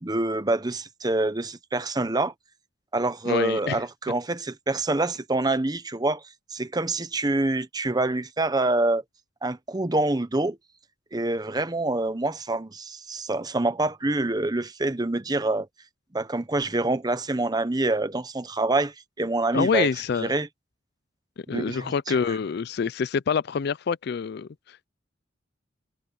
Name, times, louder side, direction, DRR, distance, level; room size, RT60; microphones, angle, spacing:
voice 1, 0.0-2.3 2.9-6.2 6.5-9.0 9.4-10.6 11.1-15.7 16.1-19.9 20.2-20.5 21.5-22.2, right 2 dB, 20° right, 0.9 m, -26 dB
voice 2, 3.3-3.8 19.5-20.3 21.4-24.9, left 6 dB, 55° left, 0.4 m, -26 dB
head